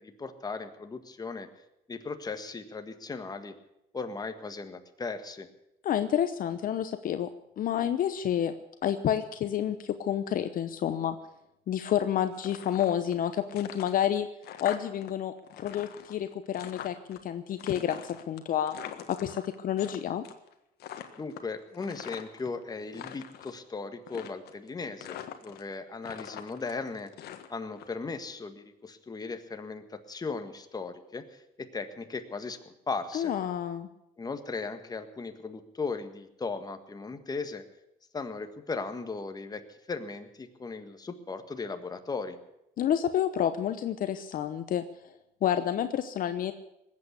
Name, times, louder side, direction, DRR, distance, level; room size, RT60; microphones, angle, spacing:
voice 1, 0.0-1.5 1.9-3.5 3.9-5.5 21.2-27.1 27.5-33.3 34.2-37.6 38.1-42.4, left 4 dB, 20° left, 7 dB, 1.6 m, -37 dB
voice 2, 5.8-7.3 7.6-8.5 8.8-11.2 11.7-14.3 14.6-18.8 19.1-20.2 33.1-33.9 42.8-44.8 45.4-46.5, left 10 dB, 55° left, 10 dB, 0.9 m, -29 dB
sound 1, 12.3-13.2 13.5-15.1 15.4-17.2 17.6-20.0 20.2-20.5 20.8-22.5 22.8-23.6 24.1-24.7 25.0-25.7 26.0-27.9, left 10 dB, 70° left, 1.6 m, -43 dB
20.0 x 8.5 x 8.3 m, 0.86 s
cardioid pair, 110°, 17 cm